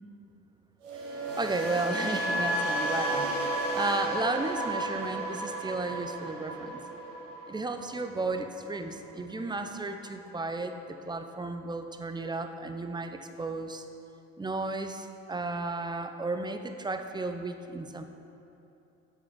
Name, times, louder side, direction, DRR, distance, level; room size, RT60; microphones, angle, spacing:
sound 1, 0.8-8.9 9.2-9.6, right 1 dB, 90° right, 1.3 m, -33 dB
voice 1, 1.1-6.9 7.5-13.8 14.4-18.0, right 3 dB, 10° right, 7 dB, 0.6 m, -34 dB
7.8 x 6.3 x 5.9 m, 2.9 s
hypercardioid pair, 70°, 38 cm